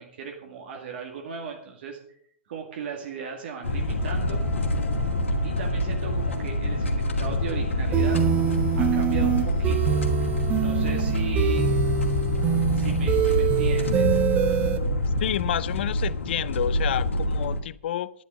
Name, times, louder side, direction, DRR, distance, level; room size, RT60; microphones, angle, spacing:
voice 1, 0.0-2.0 2.5-4.4 5.4-8.2 8.7-10.0 10.5-11.8 12.7-14.2, right 6 dB, 55° right, 1 dB, 2.1 m, -37 dB
sound 1, 3.6-17.6, left 1 dB, 75° left, 2.1 m, -26 dB
Trumpet, 3.9-11.3, equal, 75° right, 3.5 m, -44 dB
sound 2, 7.9-14.8, right 7 dB, 25° right, 1.2 m, -24 dB
voice 2, 15.2-18.1, left 11 dB, 55° left, 18 dB, 0.6 m, -29 dB
11.0 x 10.5 x 5.3 m, 0.65 s
figure-of-eight pair, 105°, 7 cm